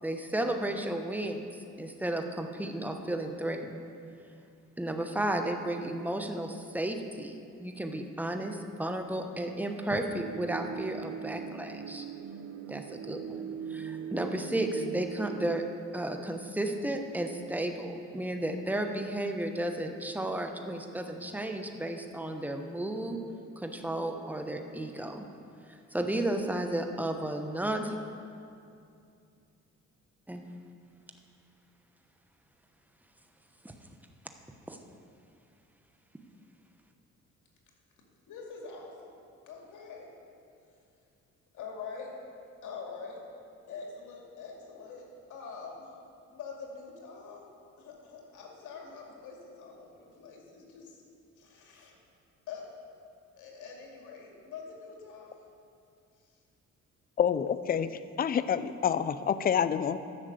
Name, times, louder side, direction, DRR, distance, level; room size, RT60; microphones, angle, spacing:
voice 1, 0.0-1.5 1.8-3.8 4.8-12.1 12.7-15.6 15.9-23.2 23.6-25.3 25.9-28.0 30.3-30.4 33.6-33.7 34.7-34.8, right 1 dB, 5° right, 5 dB, 1.0 m, -33 dB
sound 1, 10.1-15.6, right 8 dB, 60° right, 0.5 m, -40 dB
voice 2, 38.3-39.2 39.5-40.1 41.5-42.2 42.6-43.2 43.7-45.9 46.3-47.4 47.8-51.0 51.4-52.0 52.5-52.6 53.4-55.4, left 5 dB, 80° left, 0 dB, 2.4 m, -45 dB
voice 3, 57.2-57.9 58.2-60.0, left 8 dB, 30° left, 13 dB, 0.5 m, -27 dB
11.0 x 6.4 x 7.8 m, 2.5 s
cardioid pair, 90°, 30 cm